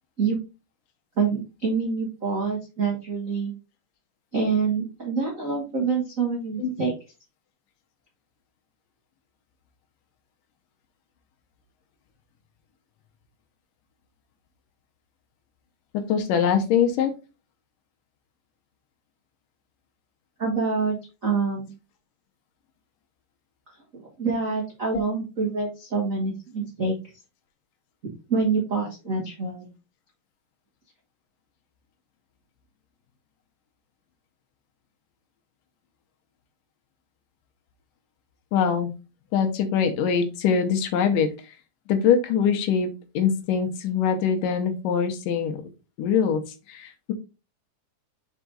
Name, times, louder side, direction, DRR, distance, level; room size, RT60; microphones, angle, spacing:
voice 1, 1.2-3.5 4.3-6.9 20.4-21.7 23.9-27.0 28.3-29.7, right 4 dB, 85° right, -2 dB, 0.7 m, -26 dB
voice 2, 15.9-17.1 24.9-25.0 38.5-38.9 39.3-41.6 41.9-42.9 43.1-45.6 46.0-46.4 46.7-47.1, left 7 dB, 75° left, 7 dB, 2.4 m, -23 dB
6.0 x 4.6 x 3.9 m, 0.30 s
omnidirectional pair, 4.1 m